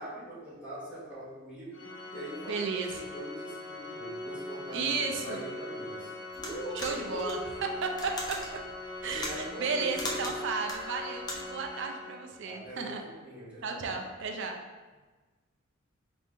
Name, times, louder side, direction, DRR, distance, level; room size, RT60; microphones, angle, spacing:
voice 1, 0.0-1.8 2.1-7.4 9.0-10.4 12.4-14.1, right 1 dB, 5° right, -11 dB, 1.5 m, -42 dB
Organ, 1.7-12.5, left 2 dB, 70° left, 0.9 m, -42 dB
voice 2, 2.5-3.0 4.7-5.5 6.7-7.4 7.8-8.4 9.0-13.0 13.6-14.6, right 4 dB, 60° right, 4 dB, 0.5 m, -33 dB
sound 1, 6.3-11.7, left 1 dB, 20° left, 0.5 m, -40 dB
4.1 x 2.5 x 3.5 m, 1.3 s
head